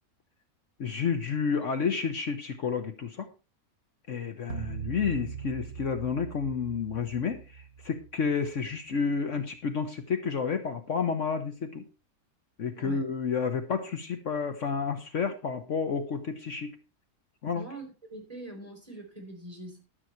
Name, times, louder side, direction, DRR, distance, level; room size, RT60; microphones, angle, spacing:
voice 1, 0.8-3.3 4.1-7.4 7.8-11.8 12.6-16.7 17.4-17.6, left 5 dB, 60° left, 8 dB, 1.3 m, -30 dB
sound 1, 4.5-9.0, right 7 dB, 85° right, 1.2 m, -41 dB
voice 2, 12.7-13.0 17.5-17.9 18.1-19.8, right 1 dB, 25° right, 1 dB, 4.7 m, -43 dB
12.5 x 8.1 x 4.6 m, 0.31 s
omnidirectional pair, 1.5 m